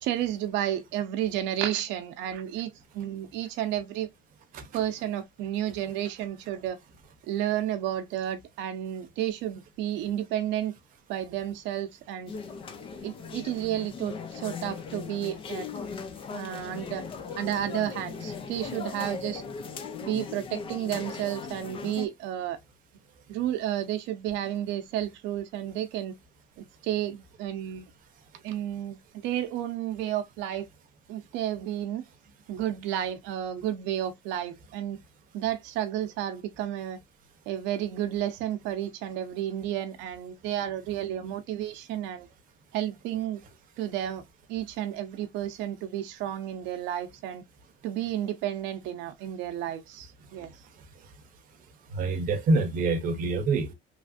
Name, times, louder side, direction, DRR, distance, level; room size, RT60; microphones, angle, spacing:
voice 1, 0.0-4.1 4.7-6.8 7.2-10.7 11.1-12.3 13.0-15.7 16.3-17.0 17.4-19.4 20.0-22.6 23.3-26.1 26.6-27.9 28.4-30.7 31.1-32.0 32.5-35.0 35.3-37.0 37.5-42.3 42.7-43.4 43.8-44.2 44.5-47.4 47.8-50.5, right 11 dB, 85° right, 0.6 m, -31 dB
sound 1, 12.3-22.1, left 5 dB, 30° left, 0.4 m, -38 dB
voice 2, 51.9-53.7, right 3 dB, 50° right, 0.7 m, -26 dB
3.1 x 2.5 x 2.4 m
cardioid pair, 175°, 18 cm